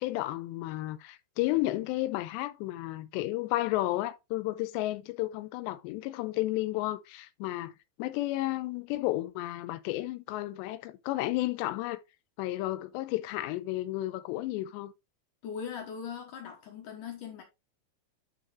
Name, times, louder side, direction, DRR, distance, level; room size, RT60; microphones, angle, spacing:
voice 1, 0.0-7.7 8.0-12.0 12.4-14.9, left 17 dB, 90° left, 2.9 m, -32 dB
voice 2, 15.4-17.4, left 7 dB, 65° left, 2.3 m, -40 dB
9.5 x 5.9 x 3.1 m
omnidirectional pair, 4.9 m